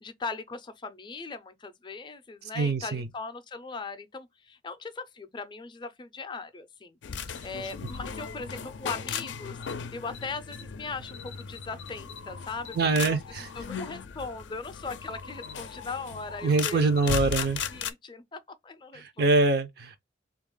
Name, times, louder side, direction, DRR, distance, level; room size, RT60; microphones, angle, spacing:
voice 1, 0.0-7.0 7.4-9.6 9.9-13.2 13.5-19.3, left 4 dB, 25° left, 0.4 m, -39 dB
voice 2, 2.6-3.1 12.8-13.5 16.4-17.6 18.9-20.0, right 3 dB, 55° right, 0.5 m, -24 dB
sound 1, 7.0-17.9, left 6 dB, 80° left, 0.4 m, -37 dB
3.3 x 2.4 x 3.7 m
head